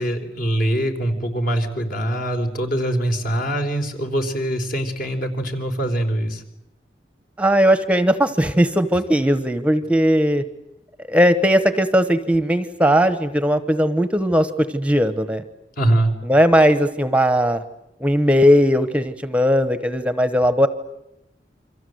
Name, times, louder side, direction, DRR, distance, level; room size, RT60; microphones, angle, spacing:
voice 1, 0.0-6.4 15.8-16.1, right 1 dB, 55° left, 5 dB, 4.0 m, -23 dB
voice 2, 7.4-10.4 11.1-15.4 16.2-17.6 18.0-20.7, equal, 5° right, 10 dB, 1.0 m, -18 dB
29.0 x 25.0 x 7.9 m, 0.87 s
head